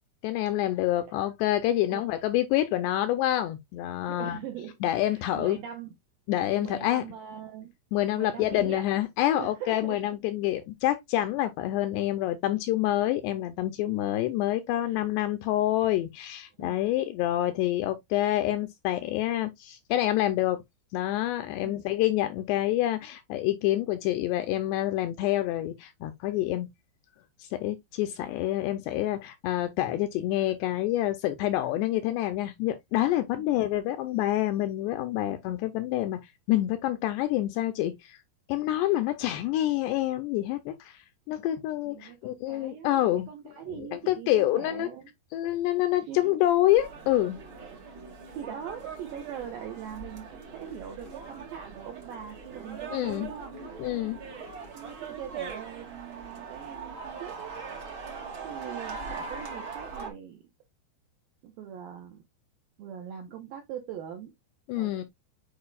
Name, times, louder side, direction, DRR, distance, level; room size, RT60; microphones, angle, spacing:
voice 1, 0.2-4.4 4.8-5.6 6.3-7.0 7.9-20.6 20.9-26.7 27.4-36.2 36.5-38.2 38.5-43.3 43.8-44.9 45.3-47.4 52.9-53.3 53.8-54.2 64.7-65.0, left 14 dB, 85° left, 2.5 m, -27 dB
voice 2, 4.0-5.9 6.6-7.7 8.2-8.8 9.4-10.0 14.8-15.0 16.6-16.8 21.6-21.8 33.3-33.6 41.9-45.1 45.4-45.5 46.0-46.3 48.3-53.7 54.7-57.5 58.4-60.4 61.4-62.2 62.8-64.4 64.8-65.0, right 9 dB, 80° right, 2.1 m, -42 dB
sound 1, 46.7-60.1, right 5 dB, 60° right, 1.3 m, -41 dB
8.6 x 4.8 x 2.4 m
omnidirectional pair, 5.4 m